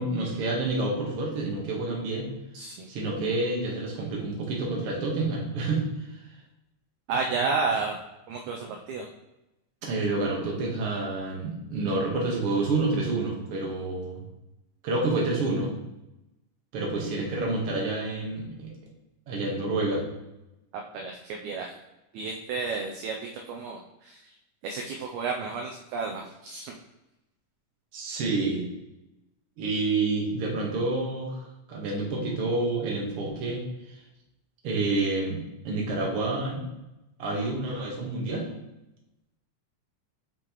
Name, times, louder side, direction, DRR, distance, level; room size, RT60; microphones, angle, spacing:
voice 1, 0.0-2.3 2.9-6.2 9.8-14.2 14.8-15.8 16.7-18.7 19.3-20.1 27.9-28.6 29.6-33.6 34.6-35.4 35.6-36.7 37.2-38.5, right 2 dB, 55° right, -1 dB, 1.9 m, -28 dB
voice 2, 2.5-2.9 7.1-8.0 8.3-9.1 20.9-21.8 22.1-24.3 24.6-26.8, right 4 dB, 80° right, 1 dB, 1.8 m, -31 dB
6.1 x 6.0 x 3.0 m, 0.96 s
omnidirectional pair, 3.8 m